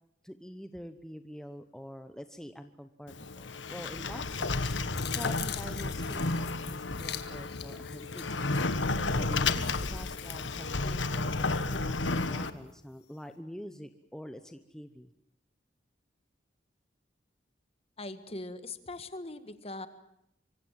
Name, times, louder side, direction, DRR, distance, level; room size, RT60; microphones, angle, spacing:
voice 1, 0.2-8.4 9.1-15.1, equal, 5° left, 8 dB, 1.0 m, -46 dB
Sliding door, 3.1-12.5, left 3 dB, 85° left, 1.5 m, -32 dB
sound 1, 4.3-11.8 12.2-12.3, left 12 dB, 65° left, 1.8 m, -44 dB
voice 2, 18.0-19.9, left 2 dB, 35° left, 11 dB, 1.7 m, -41 dB
25.5 x 24.5 x 7.6 m, 0.78 s
head